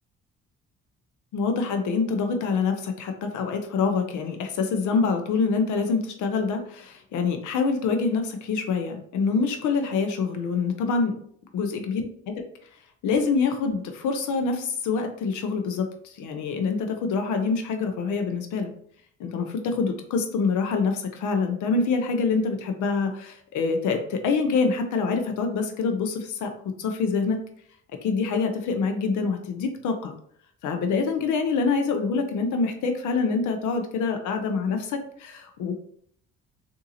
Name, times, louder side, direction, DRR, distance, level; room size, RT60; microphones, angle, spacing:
voice 1, 1.3-11.2 11.5-12.4 13.0-18.7 19.2-26.5 26.8-27.4 28.0-30.1 30.6-35.7, left 4 dB, 70° left, 5 dB, 0.7 m, -26 dB
3.7 x 2.6 x 2.8 m, 0.62 s
supercardioid pair, 65°, 31 cm